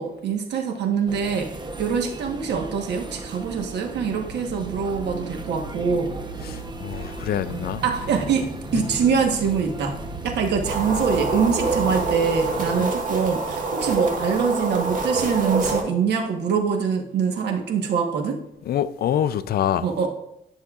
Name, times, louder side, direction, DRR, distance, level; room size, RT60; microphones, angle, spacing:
voice 1, 0.0-1.5 1.8-6.1 7.5-18.4 19.8-20.1, right 6 dB, 85° right, 1.2 m, -24 dB
sound 1, 1.1-12.9, right 2 dB, 25° right, 0.8 m, -37 dB
sound 2, 4.1-12.2, right 6 dB, 70° right, 0.8 m, -38 dB
voice 2, 6.4-7.8 8.7-8.8 12.8-12.9 18.7-19.8, left 10 dB, 65° left, 0.4 m, -25 dB
sound 3, 10.6-15.8, right 3 dB, 50° right, 1.6 m, -26 dB
11.0 x 6.3 x 2.4 m
cardioid pair, 100°, 17 cm